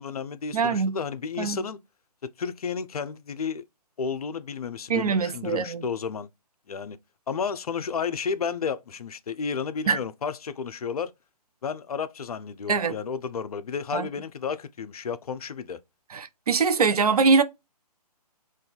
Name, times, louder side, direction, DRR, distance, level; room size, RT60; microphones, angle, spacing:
voice 1, 0.0-1.8 2.4-3.6 4.0-6.3 6.7-7.0 7.3-11.1 11.6-15.8, left 6 dB, 65° left, 0.4 m, -32 dB
voice 2, 0.5-1.0 1.4-1.6 4.9-5.8 9.9-10.0 12.7-13.0 13.9-14.1 16.1-17.4, right 5 dB, 65° right, 0.5 m, -23 dB
2.5 x 2.3 x 3.9 m
figure-of-eight pair, 140°, 21 cm